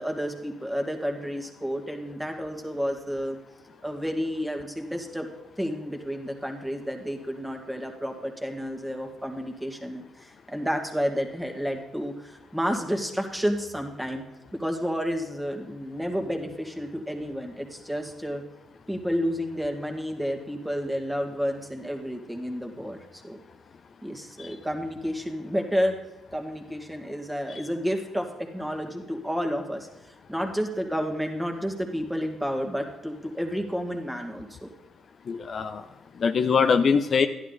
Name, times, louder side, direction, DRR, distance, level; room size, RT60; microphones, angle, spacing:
voice 1, 0.0-3.4 3.8-5.3 5.6-14.2 14.6-18.4 18.9-23.4 24.0-25.9 26.3-29.9 30.3-34.7, equal, 5° right, 3 dB, 2.1 m, -30 dB
voice 2, 35.3-35.8 36.2-37.3, left 5 dB, 50° left, 8 dB, 0.6 m, -23 dB
12.0 x 11.0 x 4.1 m, 1.0 s
cardioid pair, 90°, 0 cm